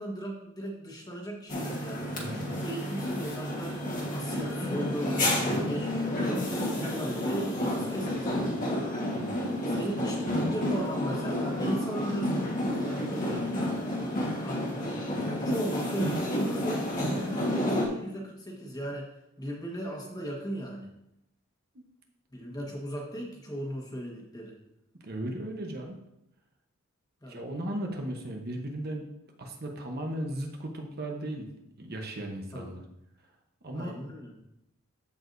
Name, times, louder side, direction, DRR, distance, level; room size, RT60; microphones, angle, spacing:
voice 1, 0.0-2.1 2.3-3.8 4.1-6.5 6.8-8.6 9.6-13.7 14.4-14.9 15.3-19.1 19.4-20.9 22.3-24.6 27.2-27.4 32.5-32.7 33.7-34.3, right 1 dB, 15° left, -1 dB, 1.4 m, -37 dB
sound 1, 1.5-17.9, left 1 dB, 35° left, 1.4 m, -30 dB
voice 2, 1.9-2.5 9.1-9.4 9.7-10.4 21.7-21.8 25.0-26.0 27.3-29.0 29.4-31.5 31.8-32.8 33.6-33.9, right 1 dB, 45° right, 2 dB, 1.0 m, -36 dB
14.0 x 4.8 x 2.6 m, 0.83 s
head